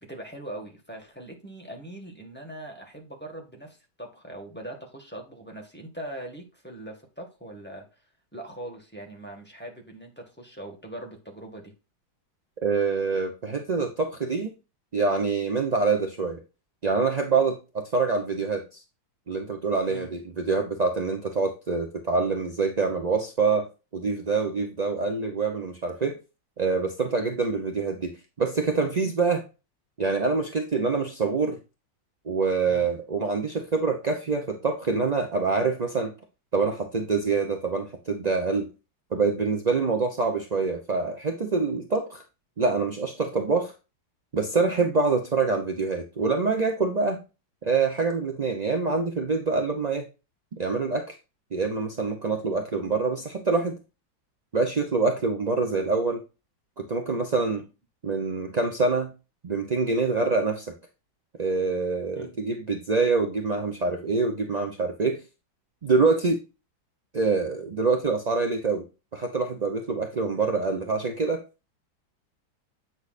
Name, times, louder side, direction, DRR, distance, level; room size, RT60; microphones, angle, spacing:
voice 1, 0.0-7.9 8.3-11.7 19.9-20.1 27.2-27.3 32.7-32.9 62.1-62.3, right 1 dB, 5° left, 0 dB, 1.7 m, -41 dB
voice 2, 12.6-14.5 14.9-16.4 16.8-18.6 19.3-23.7 23.9-26.2 26.6-28.1 28.4-29.4 30.0-31.6 32.3-36.1 36.5-38.7 39.1-42.2 42.6-43.7 44.3-47.2 47.6-50.0 50.6-51.1 51.5-53.8 54.5-56.2 56.8-57.6 58.0-59.1 59.4-60.7 61.4-65.2 65.8-66.4 67.1-68.9 69.1-71.4, right 4 dB, 45° right, 3 dB, 0.5 m, -25 dB
8.6 x 6.4 x 2.5 m, 0.29 s
omnidirectional pair, 2.1 m